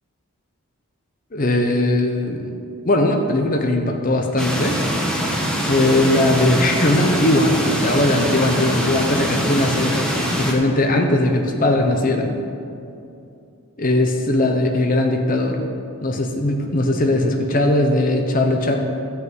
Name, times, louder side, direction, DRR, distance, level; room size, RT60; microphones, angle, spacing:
voice 1, 1.3-2.5 2.8-4.8 5.1-5.3 5.5-12.4 13.8-15.7 16.0-18.8, left 1 dB, 40° left, 3 dB, 0.8 m, -19 dB
sound 1, 4.4-10.5, equal, 5° left, 1.0 m, -23 dB
12.0 x 5.8 x 7.8 m, 2.6 s
head